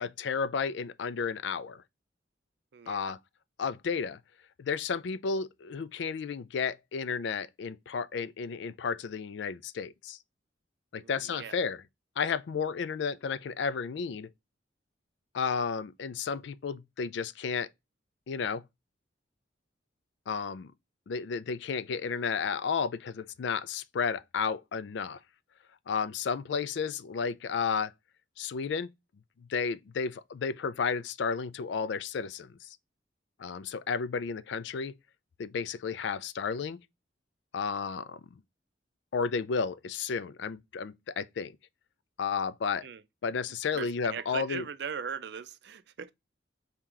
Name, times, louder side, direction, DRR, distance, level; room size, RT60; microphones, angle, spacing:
voice 1, 0.0-1.8 2.9-3.2 3.6-4.2 4.6-10.2 10.9-11.8 12.2-14.3 15.3-17.7 18.3-18.6 20.3-20.7 21.1-25.2 25.9-27.9 28.4-28.9 29.5-32.7 33.4-35.0 35.4-36.8 37.5-38.2 39.1-41.5 42.2-42.9 43.2-44.6, left 5 dB, 70° left, 0.4 m, -32 dB
voice 2, 2.7-3.1 10.9-11.6 42.8-43.0 43.7-46.1, right 6 dB, 60° right, 0.4 m, -39 dB
3.8 x 2.9 x 4.5 m
head